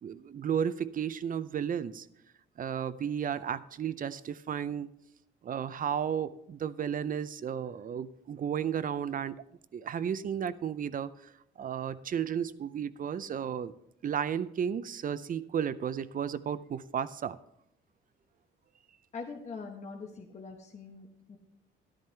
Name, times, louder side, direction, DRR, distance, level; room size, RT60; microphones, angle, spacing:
voice 1, 0.0-2.1 2.6-4.9 5.4-9.4 9.7-13.7 14.0-17.4, right 8 dB, 45° right, 15 dB, 0.5 m, -33 dB
voice 2, 19.1-21.4, left 4 dB, 35° left, 0 dB, 1.2 m, -43 dB
12.0 x 10.5 x 3.4 m, 0.76 s
cardioid pair, 90°, 20 cm